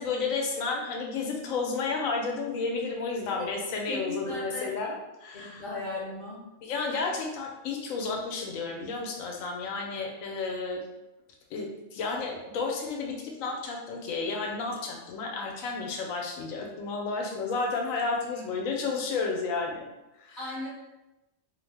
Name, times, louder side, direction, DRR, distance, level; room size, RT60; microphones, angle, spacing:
voice 1, 0.0-5.6 6.6-10.8 11.5-11.7 11.9-19.9 20.2-20.5, left 4 dB, 85° left, 1 dB, 1.0 m, -32 dB
voice 2, 3.8-4.7 5.3-6.4 20.4-20.7, left 2 dB, 45° left, -7 dB, 0.6 m, -36 dB
2.7 x 2.0 x 3.2 m, 1.0 s
omnidirectional pair, 1.3 m